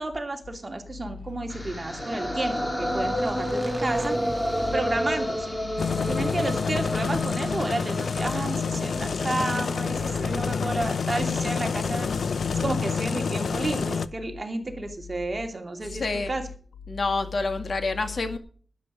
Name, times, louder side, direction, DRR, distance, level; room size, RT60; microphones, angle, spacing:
voice 1, 0.0-4.2 4.5-5.6 6.1-16.5, right 2 dB, 30° right, 2.8 m, -31 dB
Motorcycle / Engine, 1.1-8.4, right 1 dB, 15° right, 2.5 m, -40 dB
sound 1, 1.5-11.6, equal, 15° left, 2.7 m, -31 dB
sound 2, 5.8-14.1, left 5 dB, 85° left, 0.7 m, -28 dB
voice 2, 15.8-16.3 16.9-18.4, left 3 dB, 55° left, 2.1 m, -28 dB
12.5 x 11.0 x 5.0 m
wide cardioid pair, 135°, 0 cm